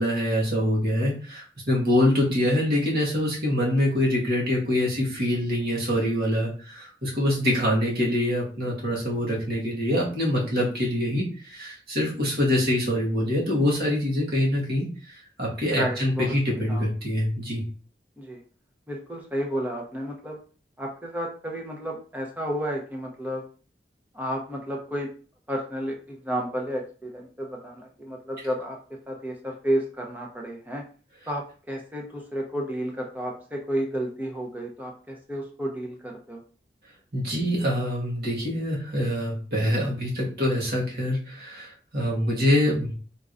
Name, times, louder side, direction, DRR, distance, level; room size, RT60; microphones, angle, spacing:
voice 1, 0.0-15.1 15.4-17.6 37.1-42.9, left 1 dB, 60° right, -4 dB, 1.7 m, -25 dB
voice 2, 15.7-16.3 16.7-16.8 18.2-18.4 18.9-20.4 20.8-23.4 24.1-25.1 25.5-28.8 29.1-30.8 31.3-36.4, equal, 10° right, 0 dB, 0.8 m, -31 dB
4.6 x 3.7 x 2.6 m, 0.39 s
head